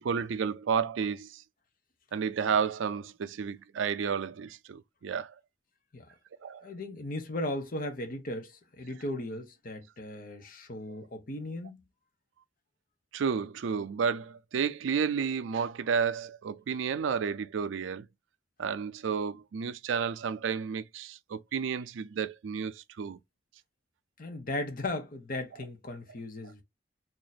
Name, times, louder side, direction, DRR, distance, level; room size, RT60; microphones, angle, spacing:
voice 1, 0.0-1.4 2.1-5.3 6.4-6.7 10.9-11.0 13.1-18.1 18.6-23.2, right 6 dB, 90° right, 0.4 m, -31 dB
voice 2, 6.6-11.8 24.2-26.6, left 1 dB, 50° left, 0.8 m, -37 dB
2.8 x 2.5 x 4.0 m
head